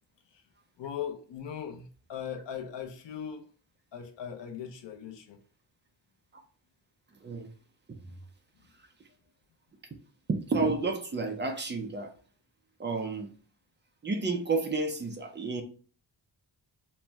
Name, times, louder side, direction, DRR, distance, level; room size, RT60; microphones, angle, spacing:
voice 1, 0.8-3.5 3.9-5.4, left 8 dB, 75° left, 0.8 m, -39 dB
voice 2, 10.3-12.1 12.8-13.3 14.0-15.6, right 3 dB, 25° right, 0.5 m, -31 dB
4.3 x 2.1 x 3.4 m
wide cardioid pair, 175°, 44 cm